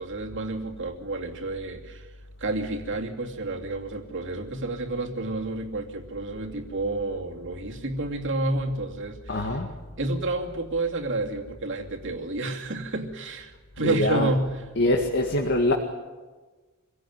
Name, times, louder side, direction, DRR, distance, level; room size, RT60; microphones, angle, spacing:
voice 1, 0.0-2.1 2.4-9.6 10.0-14.5, right 2 dB, 60° right, 2 dB, 2.8 m, -30 dB
voice 2, 9.3-9.8 13.8-14.3 14.8-15.7, left 1 dB, 55° left, 2 dB, 2.0 m, -24 dB
25.5 x 17.0 x 9.5 m, 1.3 s
head